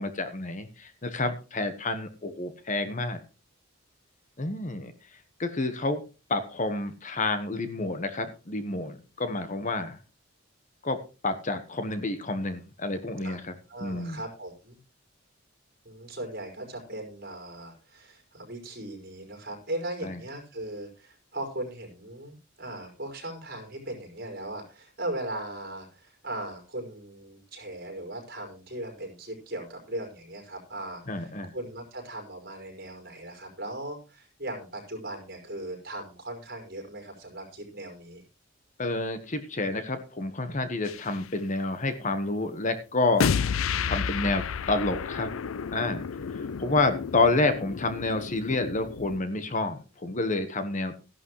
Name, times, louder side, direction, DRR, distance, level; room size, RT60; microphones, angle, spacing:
voice 1, 0.0-3.2 4.4-4.9 5.4-6.0 6.3-10.0 10.8-13.5 13.8-14.2 20.0-20.2 31.1-31.5 38.8-43.3 43.8-45.3 45.7-46.0 46.3-50.9, left 2 dB, 40° left, 10 dB, 1.2 m, -29 dB
voice 2, 13.7-14.8 15.9-38.2, right 1 dB, 50° right, 3 dB, 5.2 m, -38 dB
sound 1, 40.9-41.2 43.2-49.2, left 6 dB, 90° left, 0.5 m, -31 dB
14.0 x 11.5 x 3.1 m, 0.31 s
head